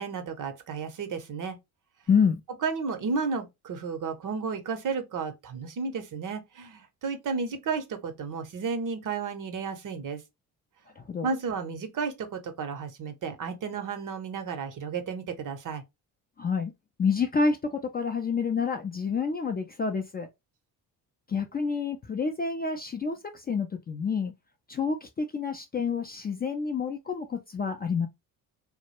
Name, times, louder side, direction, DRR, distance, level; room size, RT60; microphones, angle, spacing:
voice 1, 0.0-1.6 2.6-10.2 11.2-15.8, right 5 dB, 50° right, 0.7 m, -33 dB
voice 2, 2.1-2.4 11.0-11.3 16.4-16.7 17.0-20.3 21.3-24.3 24.7-28.1, left 5 dB, 25° left, 0.3 m, -28 dB
2.2 x 2.0 x 2.9 m
supercardioid pair, 55°, 41 cm